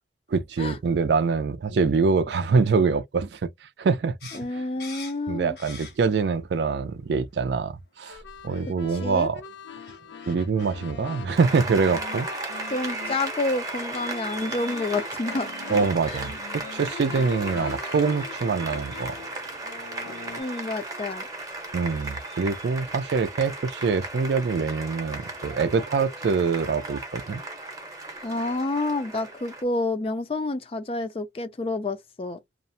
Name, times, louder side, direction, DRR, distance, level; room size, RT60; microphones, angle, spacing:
voice 1, 0.3-4.2 5.3-8.2 8.4-9.4 10.3-12.3 15.7-19.2 21.7-27.4, right 5 dB, 75° right, 0.4 m, -24 dB
sound 1, 4.2-6.3 6.6-7.4 8.0-8.2 8.5-8.6 9.5-9.6 9.8-10.8, left 5 dB, 70° left, 1.0 m, -44 dB
voice 2, 4.3-5.6 9.0-9.3 12.7-15.5 16.1-16.2 20.4-21.3 28.2-32.4, left 2 dB, 30° left, 0.4 m, -29 dB
sound 2, 8.1-20.4, left 5 dB, 90° left, 0.5 m, -42 dB
Applause, 11.4-29.6, right 2 dB, 20° right, 0.7 m, -36 dB
2.4 x 2.0 x 2.6 m
head